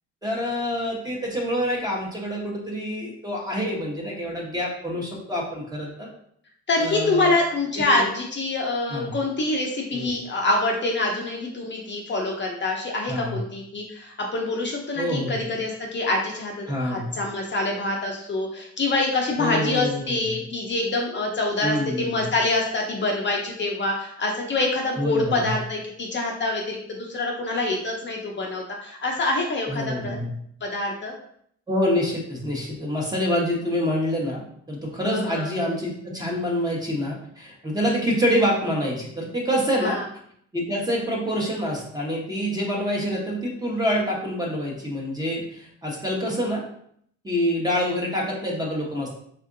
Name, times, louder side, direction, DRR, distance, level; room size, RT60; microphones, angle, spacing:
voice 1, 0.2-6.1 6.8-7.3 7.8-8.1 8.9-9.1 9.9-10.2 13.1-13.4 15.0-15.5 16.7-17.2 19.4-20.4 21.6-22.3 25.0-25.5 29.7-30.3 31.7-34.4 34.7-40.0 40.5-46.6 47.2-49.1, equal, 15° right, -3 dB, 1.0 m, -26 dB
voice 2, 6.7-30.2 30.6-31.1 35.1-35.5 39.8-40.0, left 2 dB, 40° left, 0 dB, 0.6 m, -26 dB
3.5 x 2.6 x 2.5 m, 0.67 s
cardioid pair, 90°, 30 cm